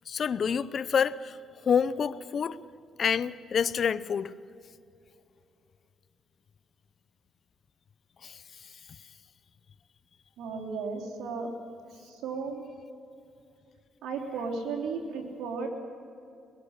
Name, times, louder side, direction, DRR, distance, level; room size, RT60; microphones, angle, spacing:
voice 1, 0.1-1.4 1.6-2.6 3.0-4.3 8.2-8.4, left 7 dB, 50° left, 0.6 m, -27 dB
voice 2, 10.4-11.5 11.9-12.6 14.0-15.7, right 4 dB, 85° right, 3.5 m, -35 dB
22.5 x 22.5 x 6.6 m
cardioid pair, 90°, 0 cm